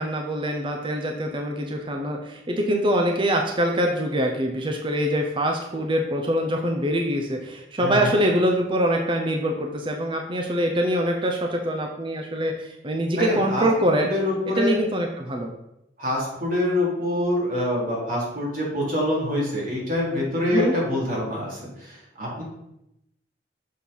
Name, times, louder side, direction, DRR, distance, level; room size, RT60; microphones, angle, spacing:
voice 1, 0.0-14.1 14.5-15.5 20.5-20.8, equal, 30° right, 2 dB, 0.7 m, -24 dB
voice 2, 7.8-8.2 13.2-13.6 14.0-14.7 16.0-22.4, left 1 dB, 50° right, -5 dB, 3.0 m, -25 dB
6.6 x 4.5 x 5.3 m, 0.83 s
head